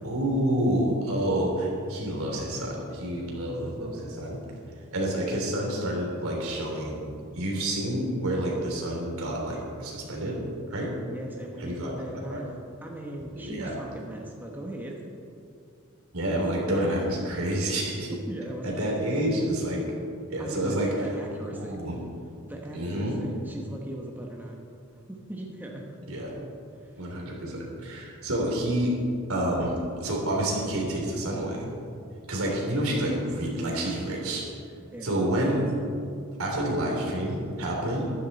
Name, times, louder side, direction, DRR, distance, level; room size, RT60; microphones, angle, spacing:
voice 1, 0.0-4.4 4.9-7.1 7.3-10.4 10.7-10.9 11.6-12.4 13.4-13.7 16.1-18.1 18.6-19.8 20.3-20.9 21.5-22.0 22.7-23.2 26.1-26.3 27.0-28.9 29.3-29.7 30.0-31.7 32.3-34.4 35.0-35.6 36.4-38.1, right 1 dB, 80° right, -2 dB, 3.4 m, -28 dB
voice 2, 3.5-4.2 11.1-12.5 12.8-15.0 16.2-16.4 18.3-19.0 20.4-21.8 22.5-24.6 25.1-25.9 26.3-26.5 26.7-27.1 34.9-35.2, right 1 dB, 10° right, -1 dB, 1.3 m, -39 dB
14.5 x 12.0 x 4.2 m, 2.5 s
head